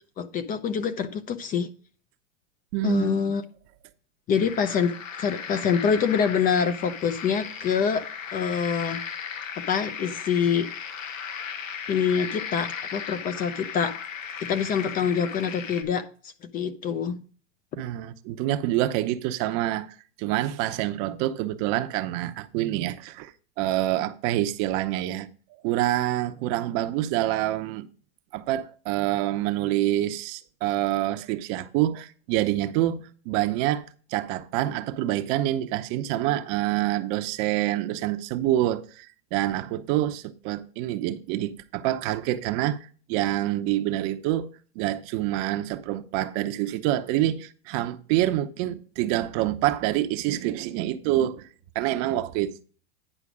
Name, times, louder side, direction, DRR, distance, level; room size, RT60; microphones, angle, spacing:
voice 1, 0.2-1.7 2.8-3.4 4.3-8.1 8.3-9.0 9.6-10.7 11.9-13.9 14.4-17.2, left 7 dB, 25° left, 0.6 m, -25 dB
voice 2, 2.7-3.2 17.8-19.9 20.2-23.3 23.6-25.3 25.6-27.9 28.3-33.8 34.1-42.8 43.1-51.5 51.7-52.6, right 14 dB, 40° right, 0.8 m, -26 dB
sound 1, 4.4-15.8, left 7 dB, 85° left, 1.6 m, -36 dB
10.0 x 4.9 x 4.9 m
hypercardioid pair, 125°, 38 cm